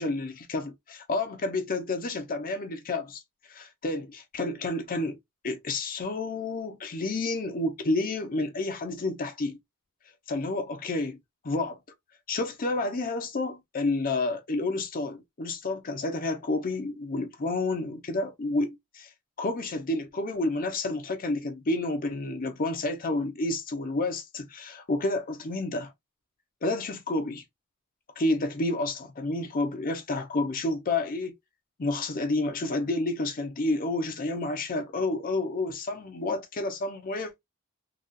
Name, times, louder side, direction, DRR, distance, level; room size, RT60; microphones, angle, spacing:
voice 1, 0.0-3.2 3.5-5.2 5.4-9.6 10.3-11.2 11.4-11.8 12.3-19.1 19.4-25.9 26.6-27.4 28.2-31.3 31.8-37.3, left 2 dB, 40° left, 0.6 m, -30 dB
3.9 x 2.4 x 2.4 m
head